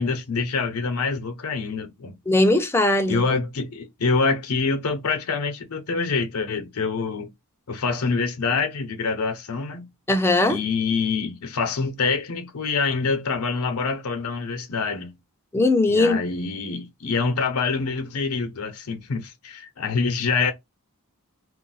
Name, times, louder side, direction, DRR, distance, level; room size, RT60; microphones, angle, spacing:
voice 1, 0.0-2.2 3.0-7.3 7.7-9.9 10.5-15.1 15.9-20.5, left 4 dB, 75° left, 0.6 m, -26 dB
voice 2, 2.3-3.2 10.1-10.6 15.5-16.2, left 2 dB, 10° left, 0.4 m, -19 dB
2.4 x 2.1 x 3.8 m
head